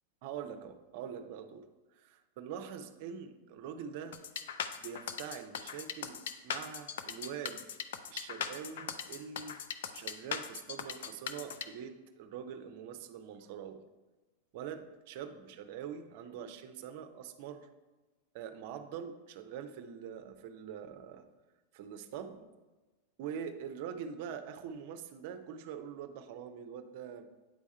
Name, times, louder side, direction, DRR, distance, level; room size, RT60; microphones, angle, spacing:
voice 1, 0.2-1.7 1.9-4.2 4.8-7.6 8.1-9.6 9.9-13.8 14.5-17.7 18.3-21.3 21.7-22.4 23.2-27.3, right 8 dB, 55° right, 9 dB, 0.6 m, -44 dB
sound 1, 4.1-11.7, left 8 dB, 70° left, 0.4 m, -39 dB
8.9 x 3.5 x 4.3 m, 1.2 s
hypercardioid pair, 100°, 0 cm